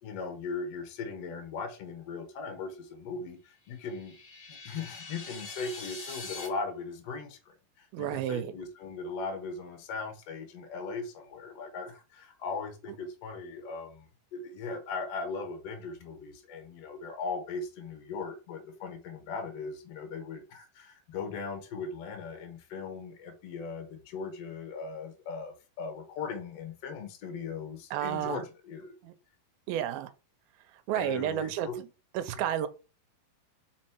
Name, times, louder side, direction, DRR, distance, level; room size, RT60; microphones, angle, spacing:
voice 1, 0.0-4.2 4.5-28.9 30.9-31.8, left 4 dB, 75° left, 1.4 m, -39 dB
sound 1, 3.7-6.5, left 3 dB, 45° left, 1.2 m, -43 dB
voice 2, 7.9-8.5 27.9-28.4 29.0-29.1 29.7-30.1 30.9-31.9 32.1-32.7, right 11 dB, 80° right, 2.3 m, -31 dB
5.1 x 4.3 x 4.5 m
omnidirectional pair, 4.7 m